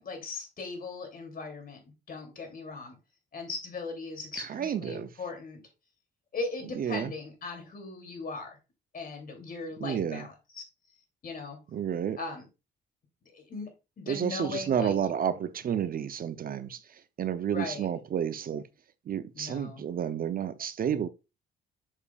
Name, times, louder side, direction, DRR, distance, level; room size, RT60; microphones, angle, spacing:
voice 1, 0.0-1.8 2.1-3.0 3.3-5.6 6.3-8.6 8.9-10.6 11.2-11.6 12.2-12.5 13.3-13.7 14.0-14.9 17.5-17.9 19.3-19.8, left 3 dB, 45° left, 2.7 m, -38 dB
voice 2, 4.3-5.1 6.8-7.1 9.8-10.3 11.7-12.2 14.1-18.7 19.1-21.1, right 8 dB, 45° right, 0.5 m, -31 dB
7.2 x 6.6 x 2.3 m
cardioid pair, 90°, 20 cm